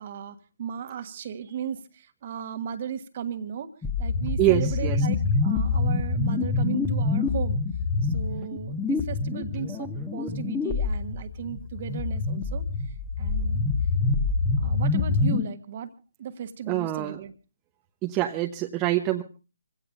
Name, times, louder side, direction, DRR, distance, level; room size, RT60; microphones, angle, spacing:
voice 1, 0.0-3.7 4.0-7.6 8.0-12.6 13.2-13.6 14.6-15.9 16.2-17.3, right 8 dB, 40° right, 9 dB, 1.5 m, -36 dB
sound 1, 3.8-15.4, left 3 dB, 10° left, 1.4 m, -26 dB
voice 2, 4.4-5.1 16.7-17.2 18.0-19.2, right 14 dB, 20° right, 3 dB, 0.9 m, -25 dB
26.5 x 17.0 x 2.5 m, 0.32 s
figure-of-eight pair, 140°, 0 cm